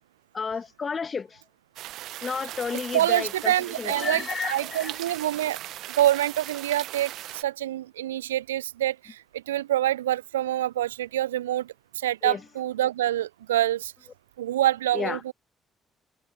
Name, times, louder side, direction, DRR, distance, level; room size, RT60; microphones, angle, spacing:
voice 1, 0.3-1.4 2.2-5.0 12.2-12.4 14.9-15.2, left 5 dB, 35° left, 0.4 m, -32 dB
sound 1, 1.8-7.4, right 14 dB, 60° right, 0.9 m, -39 dB
voice 2, 2.9-5.6 5.9-13.9 14.4-15.3, right 13 dB, 80° right, 0.5 m, -26 dB
figure-of-eight pair, 45°, 0 cm